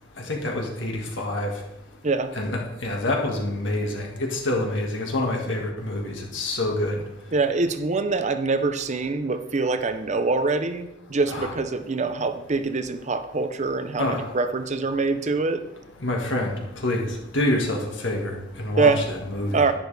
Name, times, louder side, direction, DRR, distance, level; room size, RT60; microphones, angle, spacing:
voice 1, 0.3-1.5 2.4-7.0 11.3-11.5 14.0-14.2 16.0-17.1 17.3-19.6, left 1 dB, 70° left, 0 dB, 1.9 m, -27 dB
voice 2, 7.3-15.6 18.8-19.1 19.5-19.7, right 3 dB, 35° right, 10 dB, 0.6 m, -24 dB
11.0 x 10.0 x 3.4 m, 0.94 s
head